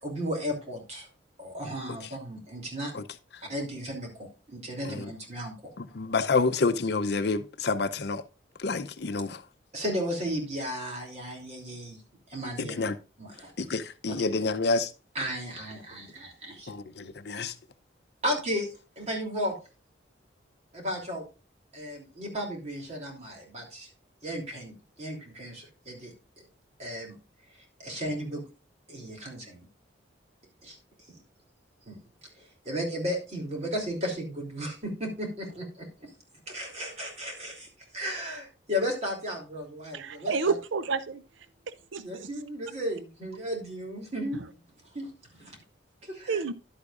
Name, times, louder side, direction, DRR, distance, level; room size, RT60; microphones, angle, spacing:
voice 1, 0.0-1.1 1.4-2.9 3.4-5.5 9.7-12.0 12.3-12.7 13.2-13.7 14.1-14.2 15.1-16.7 18.2-19.5 20.7-21.2 21.7-23.9 24.2-26.5 26.8-27.2 27.8-28.4 28.9-29.7 30.6-30.8 31.1-31.2 31.9-32.0 32.4-36.1 36.5-40.5 42.0-44.4 44.9-45.1 45.4-45.6 46.0-46.4, equal, 35° right, 3.1 m, -34 dB
voice 2, 5.8-8.2 8.6-9.4 12.6-13.0 13.6-14.9 16.7-17.5, left 3 dB, 60° left, 0.6 m, -28 dB
voice 3, 39.9-41.2 41.7-42.3 46.3-46.5, right 5 dB, 85° right, 0.5 m, -30 dB
11.5 x 8.3 x 2.5 m
head